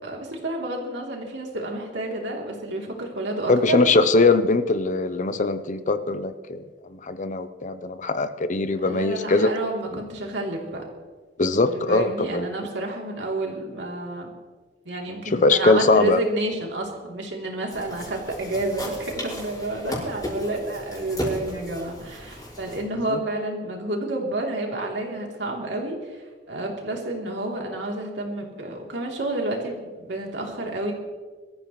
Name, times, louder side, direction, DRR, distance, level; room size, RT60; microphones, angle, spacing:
voice 1, 0.0-3.8 8.8-10.8 11.6-14.3 14.8-30.9, right 2 dB, 70° right, 0 dB, 3.1 m, -30 dB
voice 2, 3.5-6.6 6.9-9.5 11.4-12.5 15.1-16.2 19.9-20.0 23.1-23.2, left 3 dB, 45° left, 12 dB, 0.7 m, -21 dB
sound 1, 17.7-22.8, equal, 20° left, 5.3 m, -35 dB
23.5 x 14.0 x 3.1 m, 1.4 s
head